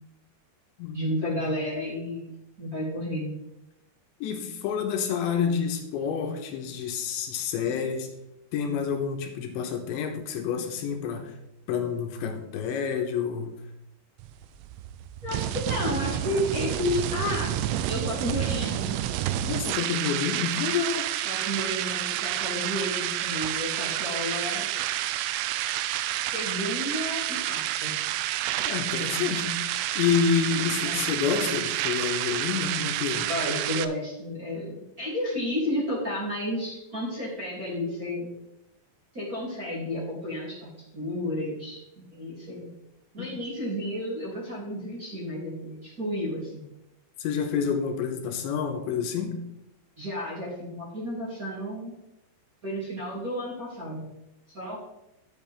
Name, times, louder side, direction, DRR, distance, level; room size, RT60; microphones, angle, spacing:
voice 1, 0.9-2.3 2.6-3.4 15.2-17.6 17.9-18.9 21.2-24.7 26.3-27.9 30.5-31.0 33.3-38.3 39.1-42.7 43.1-46.6 50.0-51.9 52.6-54.1 54.5-54.8, left 1 dB, 25° right, -7 dB, 2.2 m, -32 dB
voice 2, 4.2-8.1 8.5-11.3 11.7-13.6 19.4-21.1 28.6-29.6 30.0-33.3 43.2-43.3 47.2-49.4, left 7 dB, 85° left, 4 dB, 3.4 m, -28 dB
sound 1, 14.2-33.9, right 12 dB, 90° right, 3.0 m, -29 dB
12.0 x 7.9 x 3.5 m, 0.87 s
omnidirectional pair, 5.2 m